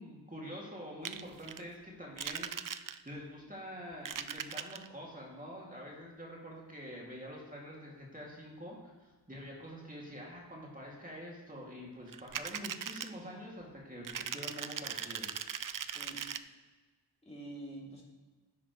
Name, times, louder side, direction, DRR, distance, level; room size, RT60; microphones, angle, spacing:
voice 1, 0.0-2.5 3.0-15.3, equal, 20° right, -4 dB, 2.6 m, -46 dB
sound 1, 1.0-1.6 2.2-3.2 3.9-4.9 12.1-13.1 14.0-16.4, right 8 dB, 50° right, 0.5 m, -39 dB
voice 2, 15.8-16.2 17.2-18.0, right 1 dB, 15° left, -5 dB, 3.1 m, -47 dB
12.0 x 10.0 x 3.2 m, 1.3 s
wide cardioid pair, 80°, 41 cm